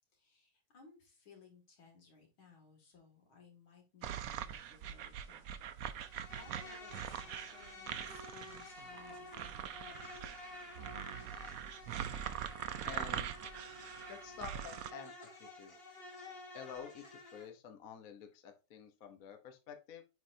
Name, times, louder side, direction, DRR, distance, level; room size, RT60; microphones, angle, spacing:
voice 1, 0.1-5.5 5.8-10.0, left 4 dB, 75° left, 1 dB, 3.1 m, -62 dB
sound 1, 4.0-14.9, right 9 dB, 80° right, 0.7 m, -43 dB
Insect, 6.0-17.5, left 2 dB, 30° left, 1.6 m, -52 dB
voice 2, 12.8-13.4 14.1-15.1 15.4-15.8 16.5-20.0, left 8 dB, 50° left, 6 dB, 1.1 m, -49 dB
9.6 x 4.2 x 2.7 m, 0.29 s
omnidirectional pair, 2.2 m